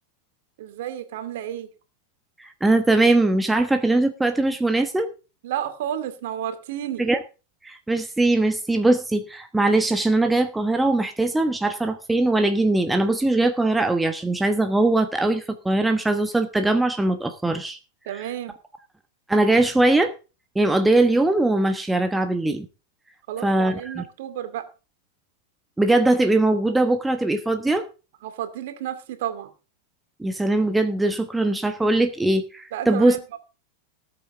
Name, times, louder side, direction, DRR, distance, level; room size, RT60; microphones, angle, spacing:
voice 1, 0.6-1.7 5.4-7.1 18.1-18.6 23.3-24.7 28.2-29.5 32.7-33.4, right 11 dB, 55° right, 8 dB, 2.3 m, -31 dB
voice 2, 2.4-5.1 7.0-7.2 7.6-17.8 19.3-20.1 20.5-22.7 23.4-24.0 25.8-27.8 30.2-33.2, right 2 dB, 5° right, 7 dB, 1.2 m, -21 dB
19.0 x 8.5 x 3.8 m, 0.33 s
figure-of-eight pair, 90°, 0 cm